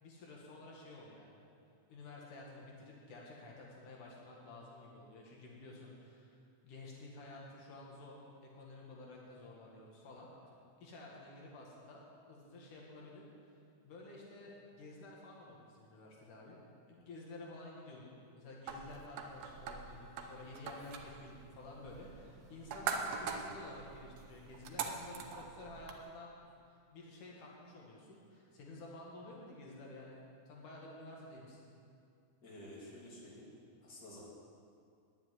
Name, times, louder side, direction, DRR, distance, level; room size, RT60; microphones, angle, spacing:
voice 1, 0.0-1.4 1.9-6.4 6.6-10.5 10.8-12.0 12.3-13.6 13.8-16.6 16.9-31.7, left 2 dB, 80° left, -3 dB, 3.3 m, -52 dB
sound 1, 18.7-26.0, right 5 dB, 65° right, 1.8 m, -43 dB
voice 2, 32.4-33.5 33.8-34.2, left 1 dB, 30° left, -6 dB, 3.2 m, -51 dB
10.0 x 8.4 x 9.6 m, 2.4 s
omnidirectional pair, 3.6 m